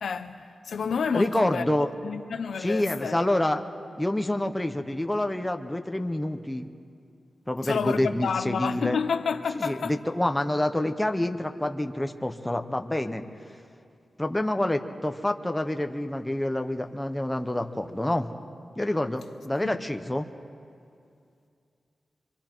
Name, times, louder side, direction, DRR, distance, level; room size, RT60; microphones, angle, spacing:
voice 1, 0.0-1.6 2.0-3.2 7.6-10.0 19.6-19.8, left 6 dB, 85° left, 0.8 m, -29 dB
voice 2, 1.1-1.9 2.6-3.6 4.0-6.7 7.5-9.0 9.5-13.2 14.2-18.3 18.8-20.3, left 1 dB, 10° left, 0.7 m, -27 dB
25.5 x 24.5 x 4.5 m
wide cardioid pair, 175°, 0 cm